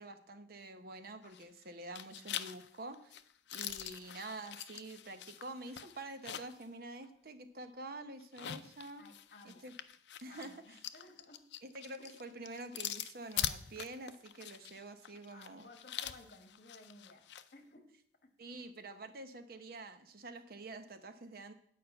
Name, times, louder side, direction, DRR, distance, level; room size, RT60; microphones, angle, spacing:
voice 1, 0.0-3.2 3.5-9.0 9.4-9.7 10.2-10.8 11.7-15.7 18.4-21.5, right 2 dB, 55° right, 9 dB, 0.9 m, -47 dB
sound 1, 1.2-1.6 1.9-6.7 7.0-7.1 8.2-17.5, left 11 dB, 70° left, 0.5 m, -44 dB
voice 2, 9.0-9.7 10.3-11.4 15.3-17.3 17.5-17.9, left 2 dB, 55° left, 5 dB, 1.5 m, -57 dB
9.0 x 5.1 x 7.9 m, 0.64 s
head